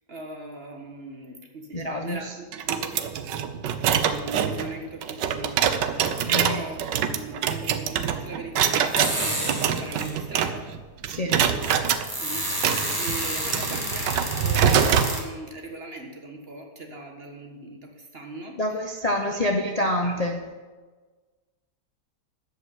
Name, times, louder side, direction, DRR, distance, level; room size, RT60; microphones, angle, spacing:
voice 1, 0.1-3.0 3.8-10.7 11.2-11.9 12.2-18.8 19.3-19.7 20.0-20.2, right 2 dB, 35° right, 2 dB, 1.6 m, -39 dB
voice 2, 1.7-2.4 6.3-6.7 11.1-11.4 18.6-20.5, left 1 dB, 30° left, 3 dB, 0.8 m, -27 dB
sound 1, 2.5-10.8 11.0-12.0 12.5-15.1, right 8 dB, 85° right, 1.5 m, -25 dB
sound 2, 8.8-10.2 10.8-10.9 11.4-15.2, right 1 dB, 15° right, 1.9 m, -30 dB
13.5 x 5.5 x 9.4 m, 1.3 s
omnidirectional pair, 1.9 m